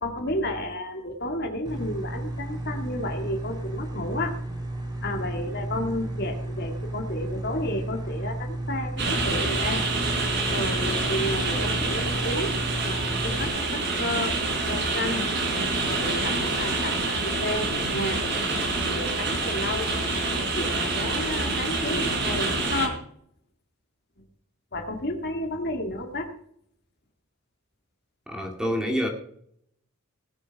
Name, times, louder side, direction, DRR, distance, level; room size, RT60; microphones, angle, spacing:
voice 1, 0.0-4.4 5.0-9.8 10.5-12.5 12.8-14.3 14.7-15.3 15.9-18.2 18.9-19.9 20.4-23.0 24.7-26.3, left 1 dB, 45° left, 4 dB, 2.1 m, -31 dB
sound 1, 1.6-13.5, right 1 dB, 20° right, 3.0 m, -33 dB
sound 2, 9.0-22.9, right 3 dB, 50° right, 4.1 m, -27 dB
voice 2, 28.3-29.1, equal, 5° right, 2 dB, 2.2 m, -27 dB
19.5 x 7.2 x 4.7 m, 0.67 s
head